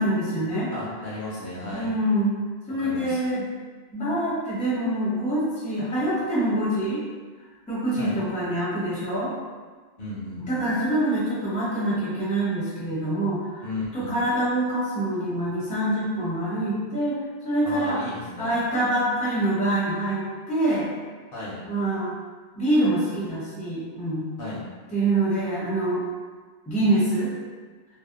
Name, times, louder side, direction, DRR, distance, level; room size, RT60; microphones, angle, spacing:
voice 1, 0.0-0.7 1.7-2.4 2.7-3.4 3.9-7.0 7.7-9.3 10.5-13.6 13.9-18.0 18.4-20.9 21.7-22.1 22.6-24.3 24.9-26.0 26.7-27.3, right 1 dB, 10° left, -9 dB, 0.6 m, -25 dB
voice 2, 0.7-1.9 2.7-3.2 8.0-8.2 10.0-10.7 13.6-14.2 17.6-18.5 21.3-21.6 24.4-24.6, left 2 dB, 60° left, -8 dB, 0.8 m, -34 dB
2.6 x 2.0 x 2.4 m, 1.4 s
omnidirectional pair, 1.1 m